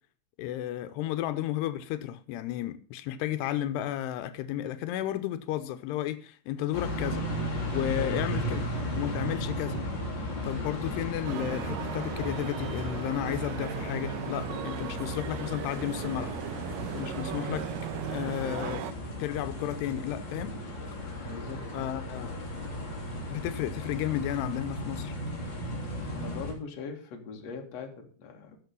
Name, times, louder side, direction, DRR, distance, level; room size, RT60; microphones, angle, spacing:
voice 1, 0.4-7.3 7.7-8.6 9.0-9.8 10.4-16.4 16.9-17.7 18.0-18.8 19.2-20.6 21.7-22.4 23.3-25.2, left 12 dB, 85° left, 2.8 m, -33 dB
sound 1, 6.7-26.5, equal, 30° left, 3.6 m, -35 dB
voice 2, 8.0-8.6 9.3-9.4 21.2-21.7 26.1-28.6, left 5 dB, 45° left, 2.7 m, -41 dB
sound 2, 11.3-18.9, right 12 dB, 90° right, 1.9 m, -37 dB
15.0 x 6.7 x 5.4 m
omnidirectional pair, 4.7 m